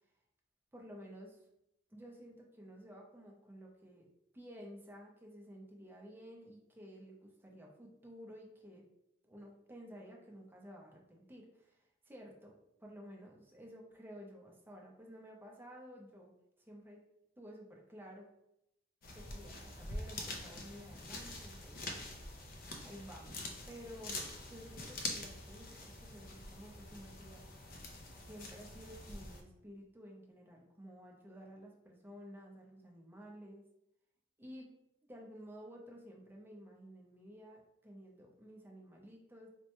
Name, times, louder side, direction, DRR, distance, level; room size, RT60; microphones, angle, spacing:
voice 1, 0.7-1.4 1.9-4.1 4.3-8.8 9.2-12.5 12.8-17.0 17.4-18.3 19.1-22.0 22.8-24.2 24.5-27.5 28.2-33.6 34.4-34.7 35.0-39.5, equal, 10° right, -1 dB, 0.5 m, -53 dB
sound 1, 19.0-29.4, left 2 dB, 50° left, 0.5 m, -45 dB
4.3 x 2.2 x 2.9 m, 0.81 s
head